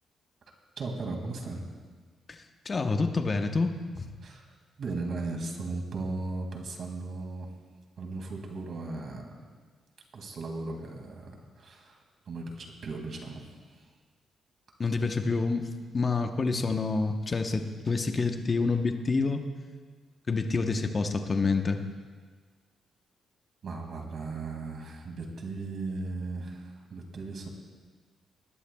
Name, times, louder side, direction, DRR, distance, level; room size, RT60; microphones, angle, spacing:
voice 1, 0.8-1.6 4.2-7.5 8.0-9.4 10.1-12.0 12.3-13.8 23.6-27.5, right 3 dB, 60° right, 2 dB, 2.2 m, -37 dB
voice 2, 2.3-3.7 4.0-4.1 14.8-15.7 15.9-19.5 20.3-21.8, left 4 dB, 35° left, 5 dB, 1.0 m, -28 dB
19.5 x 11.5 x 2.3 m, 1.5 s
cardioid pair, 80°, 0 cm